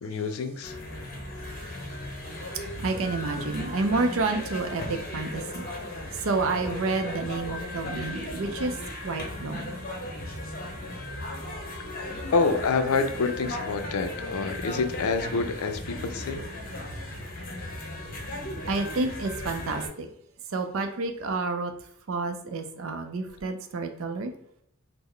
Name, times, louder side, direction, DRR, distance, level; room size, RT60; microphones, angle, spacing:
voice 1, 0.0-0.7 12.3-16.4, left 4 dB, 85° left, 8 dB, 0.4 m, -27 dB
sound 1, 0.6-19.9, left 1 dB, 40° left, 0.7 m, -36 dB
voice 2, 2.8-5.6 6.3-8.7 9.0-9.7 18.7-20.1 20.5-21.7 22.1-24.3, right 3 dB, 70° right, 6 dB, 0.5 m, -29 dB
3.7 x 2.0 x 3.1 m, 0.73 s
head